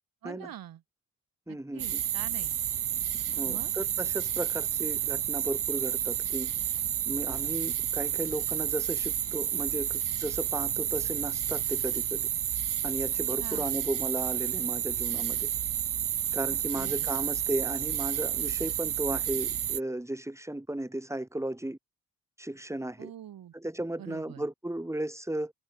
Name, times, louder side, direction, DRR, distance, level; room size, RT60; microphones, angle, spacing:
voice 1, 0.2-0.8 1.5-2.5 3.4-3.7 13.4-13.7 16.8-17.1 23.0-23.5 24.0-24.4, right 11 dB, 85° right, 3.1 m, -44 dB
voice 2, 1.5-2.0 3.3-6.5 7.1-12.3 12.8-15.5 16.3-21.8 22.4-23.1 23.5-25.5, right 1 dB, 10° right, 4.2 m, -35 dB
sound 1, 1.8-19.8, right 10 dB, 65° right, 1.2 m, -30 dB
cardioid pair, 100°, 34 cm